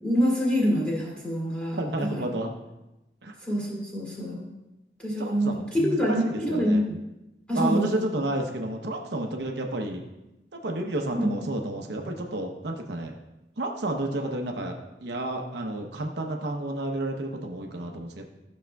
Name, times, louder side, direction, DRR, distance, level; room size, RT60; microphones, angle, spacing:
voice 1, 0.0-2.2 3.4-4.5 5.0-5.5 5.7-7.0 7.5-8.0 11.1-11.3, equal, 5° left, -6 dB, 2.4 m, -26 dB
voice 2, 1.8-2.5 3.2-3.3 5.2-6.8 7.5-10.0 10.5-13.1 13.6-18.3, right 1 dB, 80° right, 3 dB, 0.8 m, -31 dB
12.5 x 6.3 x 2.3 m, 0.95 s
head